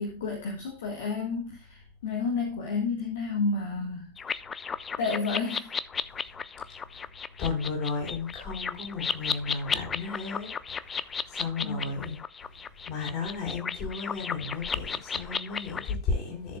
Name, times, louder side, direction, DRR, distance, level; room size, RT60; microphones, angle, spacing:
voice 1, 0.0-4.4 5.0-5.7 11.6-11.9, left 4 dB, 60° left, 1.7 m, -31 dB
sound 1, 4.2-15.9, left 6 dB, 20° left, 0.4 m, -34 dB
voice 2, 6.6-7.1 7.4-16.6, left 4 dB, 40° left, 4.3 m, -34 dB
14.0 x 7.0 x 2.4 m
figure-of-eight pair, 90°, 0 cm